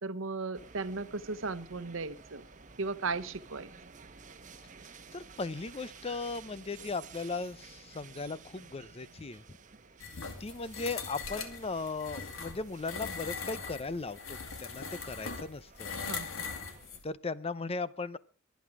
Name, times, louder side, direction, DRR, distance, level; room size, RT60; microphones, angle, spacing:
voice 1, 0.0-2.4 2.8-3.7 16.0-16.5, right 3 dB, 80° right, 13 dB, 1.0 m, -36 dB
sound 1, 0.5-17.0, right 5 dB, 40° right, 1.1 m, -54 dB
voice 2, 5.1-9.4 10.4-15.9 17.0-18.2, left 3 dB, 30° left, 16 dB, 0.6 m, -37 dB
sound 2, 10.0-17.0, left 5 dB, 85° left, 2.3 m, -41 dB
23.0 x 9.4 x 4.8 m, 0.39 s
head